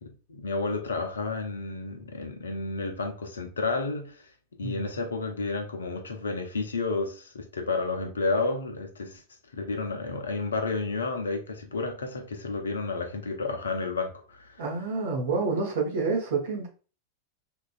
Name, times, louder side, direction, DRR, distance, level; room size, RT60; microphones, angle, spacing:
voice 1, 0.0-4.2 4.6-9.2 9.5-14.6, left 3 dB, 70° left, 0.5 m, -31 dB
voice 2, 14.6-16.7, right 4 dB, 60° right, 0.9 m, -28 dB
3.0 x 2.5 x 2.3 m
figure-of-eight pair, 90°, 0 cm